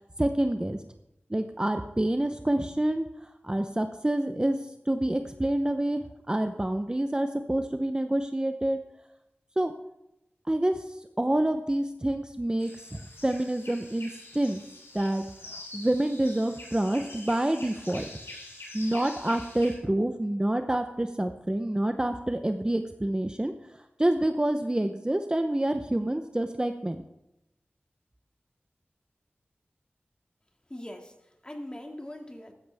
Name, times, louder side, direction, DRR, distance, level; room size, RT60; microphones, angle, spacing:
voice 1, 0.2-0.8 1.3-3.1 3.4-4.6 4.9-6.0 6.3-8.8 9.6-9.7 10.5-10.8 11.2-14.6 14.9-15.2 15.5-18.0 18.7-23.5 24.0-27.0, right 1 dB, 20° right, 7 dB, 0.8 m, -27 dB
sound 1, 12.6-19.7, left 2 dB, 80° left, 4.3 m, -45 dB
voice 2, 30.7-32.5, left 1 dB, 20° left, 3 dB, 2.2 m, -41 dB
14.5 x 13.5 x 3.5 m, 0.87 s
wide cardioid pair, 60°, 4 cm